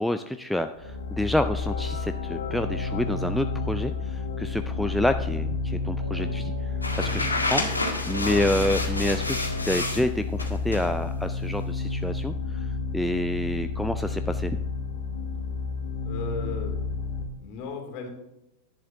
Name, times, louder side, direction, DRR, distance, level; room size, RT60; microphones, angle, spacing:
voice 1, 0.0-6.7 7.0-12.7 12.9-14.6, left 1 dB, ahead, 8 dB, 0.4 m, -28 dB
sound 1, 0.8-17.2, left 4 dB, 60° left, 1.4 m, -31 dB
sound 2, 0.8-5.4 6.0-10.1, left 1 dB, 85° right, 1.2 m, -43 dB
sound 3, 6.8-10.0 10.4-10.9, left 2 dB, 80° left, 1.6 m, -29 dB
voice 2, 16.0-16.8 17.4-18.1, left 5 dB, 40° left, 2 dB, 2.6 m, -36 dB
11.0 x 9.6 x 3.7 m, 0.91 s
figure-of-eight pair, 90°, 0 cm